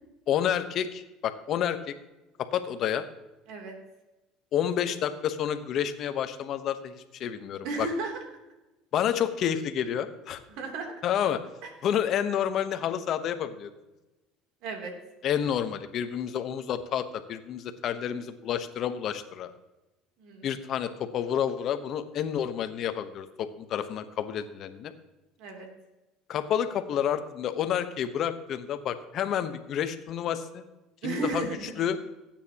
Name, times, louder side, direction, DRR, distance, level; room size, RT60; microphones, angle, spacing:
voice 1, 0.3-1.9 2.4-3.0 4.5-7.9 8.9-10.4 11.0-11.4 11.8-13.7 15.2-19.5 20.4-24.9 26.3-30.6 31.0-31.5 31.8-32.0, left 9 dB, 55° left, 10 dB, 1.0 m, -29 dB
voice 2, 7.6-8.2 10.5-10.9 14.6-14.9 20.2-20.5 25.4-25.7 31.0-31.7, right 3 dB, 70° right, 2 dB, 3.1 m, -34 dB
18.0 x 9.0 x 2.9 m, 1.0 s
supercardioid pair, 105°, 0 cm